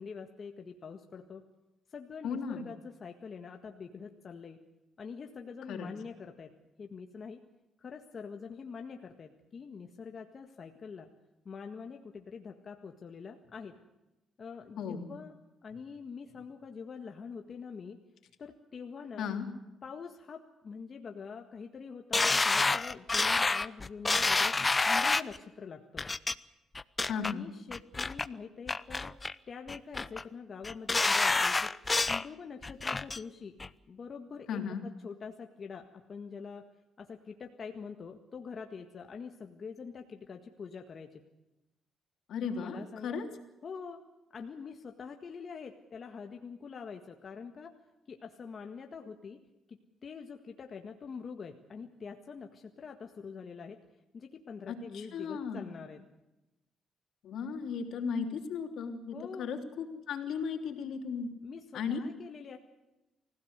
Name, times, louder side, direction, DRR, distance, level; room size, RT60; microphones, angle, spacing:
voice 1, 0.0-1.4 1.9-4.6 5.0-6.5 6.8-7.4 7.8-11.1 11.5-13.8 14.4-15.4 15.6-18.0 18.4-19.3 19.8-24.5 24.9-26.1 27.1-29.1 29.5-31.7 32.1-33.6 33.9-36.6 37.0-41.2 42.5-43.2 43.6-44.0 44.3-47.7 48.1-49.4 49.7-53.8 54.1-56.0 59.1-59.5 61.4-62.6, left 5 dB, 45° left, 4 dB, 1.7 m, -45 dB
voice 2, 2.2-2.7 5.7-5.9 14.8-15.1 19.2-19.5 27.1-27.4 34.5-34.8 42.3-43.3 54.7-55.7 57.2-61.3 61.7-62.0, left 6 dB, 75° left, 4 dB, 3.3 m, -36 dB
sound 1, 22.1-25.4 26.0-26.3 26.7-27.3 27.7-28.3 28.7-29.3 29.7-30.2 30.6-32.2 32.6-33.2 33.6-33.7, left 3 dB, 25° left, 0.7 m, -28 dB
25.0 x 16.5 x 8.2 m, 0.99 s
cardioid pair, 90°, 0 cm